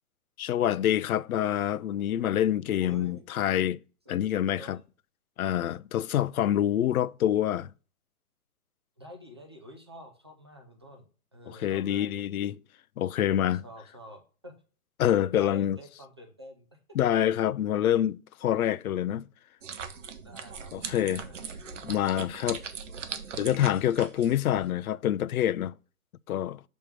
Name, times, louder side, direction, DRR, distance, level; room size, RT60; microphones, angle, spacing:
voice 1, 0.4-3.8 4.1-4.8 5.4-7.7 11.5-12.5 13.0-13.6 15.0-15.8 16.9-19.2 20.7-21.2 21.8-22.6 23.4-25.7 26.3-26.6, left 11 dB, 75° left, 0.5 m, -26 dB
voice 2, 2.8-3.2 4.1-4.3 4.6-4.8 9.0-12.2 13.5-14.6 15.3-16.8 20.1-21.4, equal, 20° right, 0.5 m, -48 dB
sound 1, 19.6-24.7, right 6 dB, 55° right, 0.9 m, -40 dB
6.2 x 3.5 x 5.8 m
hypercardioid pair, 165°, 44 cm